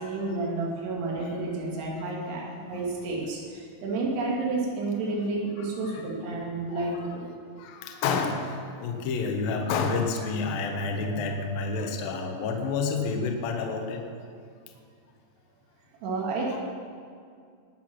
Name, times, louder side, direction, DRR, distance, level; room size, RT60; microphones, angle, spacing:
voice 1, 0.0-7.3 16.0-16.6, right 3 dB, 85° right, -3 dB, 4.1 m, -30 dB
voice 2, 5.6-6.1 6.7-7.1 7.6-14.0 16.5-16.6, left 4 dB, 70° left, 3 dB, 2.7 m, -30 dB
20.0 x 6.9 x 6.0 m, 2.2 s
omnidirectional pair, 4.7 m